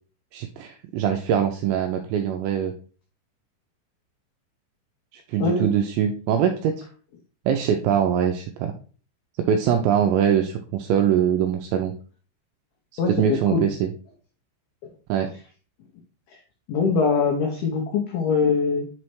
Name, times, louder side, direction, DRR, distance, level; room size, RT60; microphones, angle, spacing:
voice 1, 0.3-2.7 5.1-6.8 7.5-8.7 9.4-11.9 13.2-13.9 15.1-15.3, right 9 dB, 85° right, 5 dB, 2.5 m, -23 dB
voice 2, 5.4-5.7 13.0-13.7 14.8-14.9 16.3-16.4 16.7-18.9, left 5 dB, 90° left, 1 dB, 2.2 m, -23 dB
6.9 x 3.2 x 4.4 m, 0.39 s
omnidirectional pair, 5.6 m